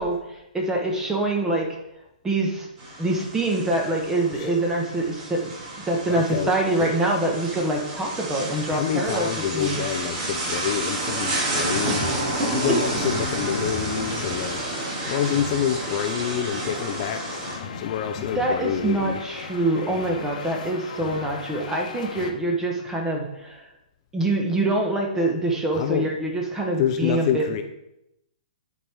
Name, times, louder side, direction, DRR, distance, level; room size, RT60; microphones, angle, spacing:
voice 1, 0.0-1.7 2.2-2.7 3.0-5.5 5.9-9.8 11.9-12.1 12.4-12.5 18.3-23.6 24.1-27.6, right 2 dB, 10° right, 1 dB, 1.2 m, -25 dB
sound 1, 2.8-17.6, right 2 dB, 35° right, 2.1 m, -30 dB
voice 2, 6.1-6.5 8.7-12.1 12.5-14.6 15.0-17.3 17.8-19.2 25.7-26.1 26.8-27.6, left 9 dB, 40° left, 7 dB, 0.5 m, -27 dB
sound 2, 11.7-22.3, left 5 dB, 60° left, 1.0 m, -37 dB
9.6 x 4.6 x 3.6 m, 0.84 s
hypercardioid pair, 150°, 5 cm